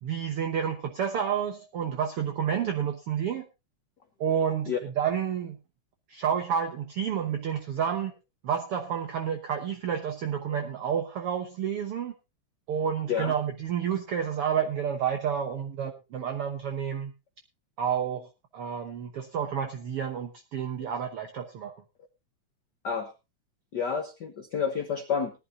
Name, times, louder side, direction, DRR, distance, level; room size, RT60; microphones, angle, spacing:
voice 1, 0.0-3.4 4.2-5.6 6.1-8.1 8.4-12.1 12.7-17.1 17.8-18.3 18.5-21.7, right 8 dB, 60° right, 4 dB, 1.6 m, -30 dB
voice 2, 23.7-25.3, left 6 dB, 70° left, 6 dB, 1.0 m, -29 dB
18.5 x 11.5 x 2.7 m, 0.26 s
omnidirectional pair, 3.5 m